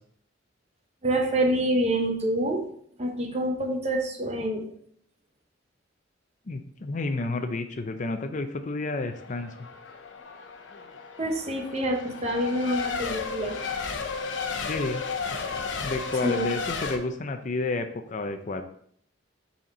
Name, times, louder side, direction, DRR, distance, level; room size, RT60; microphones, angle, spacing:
voice 1, 1.0-2.6 3.0-4.6 11.2-13.6 16.2-16.4, right 1 dB, 35° right, 3 dB, 1.0 m, -26 dB
voice 2, 6.5-9.5 14.7-15.0 15.8-18.6, left 3 dB, 45° left, 8 dB, 0.5 m, -30 dB
Race car auto racing / Accelerating revving vroom / Mechanisms, 9.1-17.0, left 5 dB, 80° left, 0.8 m, -33 dB
6.3 x 4.3 x 4.1 m, 0.64 s
head